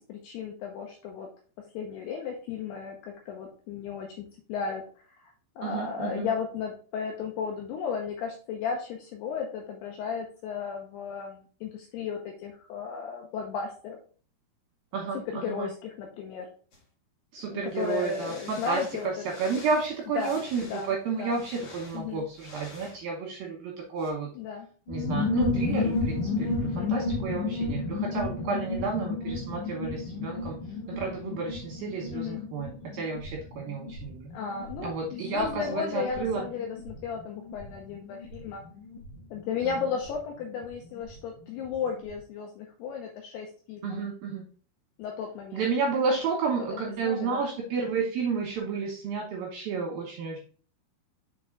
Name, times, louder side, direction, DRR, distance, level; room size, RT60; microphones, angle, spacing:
voice 1, 0.1-1.3 1.7-4.8 5.2-14.0 15.1-16.5 17.5-19.2 20.2-20.9 21.2-21.4 21.9-22.2 24.4-24.7 26.8-27.1 32.1-32.4 34.3-38.6 39.3-44.0 45.0-45.6 46.7-47.4, left 6 dB, 90° left, 1 dB, 2.4 m, -34 dB
voice 2, 5.6-6.3 14.9-15.7 17.3-24.3 24.9-30.6 30.9-34.3 34.8-36.4 39.6-39.7 43.8-44.4 45.5-50.4, right 5 dB, 80° right, 0 dB, 2.2 m, -31 dB
sound 1, 16.7-16.8 17.7-23.0 24.0-24.1, left 2 dB, 55° left, 1.8 m, -48 dB
sound 2, 24.9-41.2 41.4-41.5 41.7-42.2, left 3 dB, 70° left, 2.0 m, -33 dB
6.8 x 4.2 x 3.7 m, 0.41 s
omnidirectional pair, 5.7 m